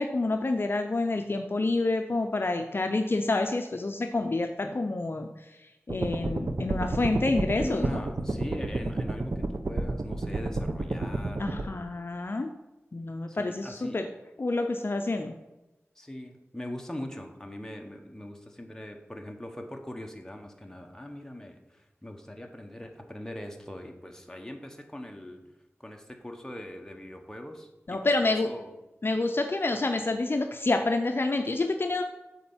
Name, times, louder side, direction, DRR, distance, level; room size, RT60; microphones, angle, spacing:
voice 1, 0.0-5.3 5.9-8.0 11.4-12.5 12.9-14.1 14.4-15.3 27.9-28.5 29.0-32.0, left 2 dB, 50° left, 5 dB, 0.6 m, -28 dB
sound 1, 5.9-11.6, right 2 dB, 60° right, 0.8 m, -30 dB
voice 2, 7.6-11.8 13.3-14.0 15.9-25.4 25.8-28.7, left 1 dB, 10° left, 3 dB, 1.2 m, -41 dB
8.5 x 4.3 x 7.2 m, 0.99 s
wide cardioid pair, 65°, 5 cm